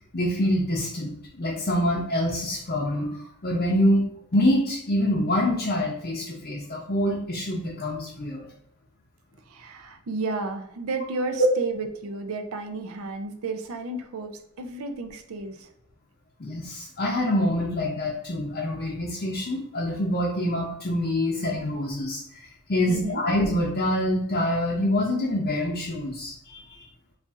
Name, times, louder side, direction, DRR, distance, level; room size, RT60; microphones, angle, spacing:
voice 1, 0.1-4.0 4.3-8.5 16.4-26.8, left 1 dB, 45° left, -4 dB, 0.6 m, -26 dB
voice 2, 9.5-15.7 22.9-23.2, right 3 dB, 70° right, 7 dB, 0.5 m, -32 dB
4.1 x 2.5 x 3.5 m, 0.76 s
head